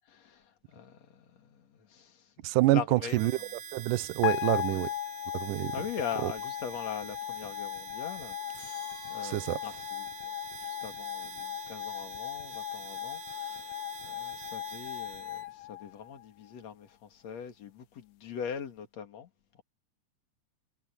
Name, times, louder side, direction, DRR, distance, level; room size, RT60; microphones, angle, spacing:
voice 1, 0.1-2.3 2.7-3.3 4.7-4.8 5.7-10.3 10.6-19.3 19.5-19.6, left 8 dB, 50° left, 3.1 m, -42 dB
voice 2, 2.4-3.3 3.7-4.9 5.3-5.8 6.2-6.3 9.2-9.6, right 17 dB, 75° right, 2.1 m, -27 dB
Harmonica, 3.1-15.5, right 7 dB, 55° right, 2.8 m, -47 dB
sound 1, 4.2-16.5, left 15 dB, 90° left, 2.9 m, -37 dB
sound 2, 8.5-9.9, left 5 dB, 35° left, 2.3 m, -54 dB
omnidirectional pair, 4.3 m